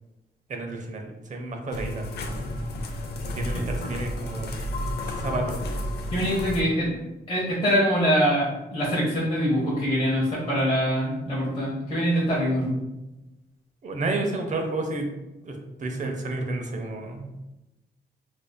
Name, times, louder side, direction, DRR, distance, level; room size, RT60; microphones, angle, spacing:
voice 1, 0.5-2.1 3.2-4.7 5.2-5.6 13.8-15.1 15.4-15.5 15.8-17.3, right 2 dB, 45° right, 3 dB, 0.6 m, -31 dB
sound 1, 1.7-6.6, left 1 dB, 70° left, 0.5 m, -31 dB
voice 2, 6.1-6.9 7.3-12.8, equal, 30° left, -6 dB, 0.8 m, -24 dB
4.8 x 2.6 x 2.2 m, 1.0 s
wide cardioid pair, 130°, 18 cm